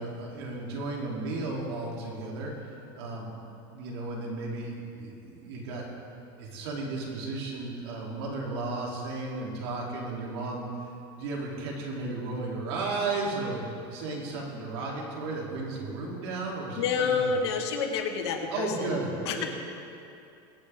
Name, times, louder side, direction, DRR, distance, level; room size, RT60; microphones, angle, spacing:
voice 1, 0.0-2.5 2.9-3.3 3.7-5.9 6.2-10.7 11.1-13.6 13.9-17.3 18.5-19.4, right 3 dB, 75° right, -3 dB, 3.2 m, -34 dB
voice 2, 16.8-19.0 19.2-19.4, left 5 dB, 90° left, 3 dB, 1.7 m, -28 dB
22.5 x 8.4 x 3.7 m, 2.7 s
supercardioid pair, 170°, 13 cm